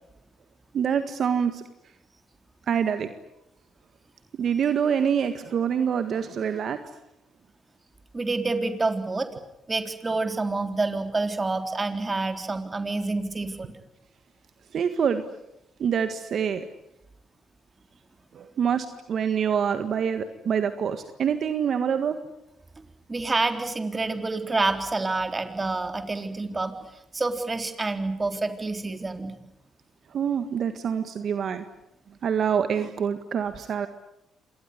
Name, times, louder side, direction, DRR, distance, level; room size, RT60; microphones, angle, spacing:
voice 1, 0.7-1.6 2.7-3.1 4.4-6.8 14.7-15.2 15.8-16.7 18.3-22.2 30.1-31.6 32.2-33.9, right 7 dB, 60° right, 9 dB, 1.7 m, -26 dB
voice 2, 8.1-9.3 9.7-13.7 23.1-26.7 27.1-29.3, right 3 dB, 25° right, 7 dB, 3.7 m, -28 dB
26.5 x 19.5 x 9.9 m, 0.87 s
supercardioid pair, 70°, 0 cm